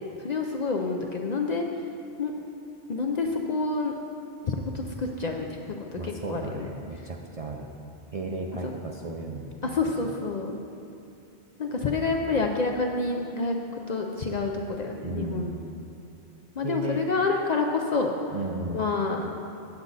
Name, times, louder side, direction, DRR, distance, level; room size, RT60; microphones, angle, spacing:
voice 1, 0.2-1.6 2.2-2.4 2.9-3.9 4.4-5.5 5.9-6.7 8.6-8.7 9.6-10.6 11.6-15.5 16.6-18.1 18.7-19.4, left 3 dB, 55° left, 2 dB, 0.5 m, -28 dB
voice 2, 5.9-7.7 8.1-9.7 10.0-10.1 15.0-15.6 16.6-17.0 18.3-18.8, right 2 dB, 50° right, 1 dB, 0.5 m, -34 dB
8.3 x 7.9 x 4.0 m, 2.6 s
omnidirectional pair, 1.1 m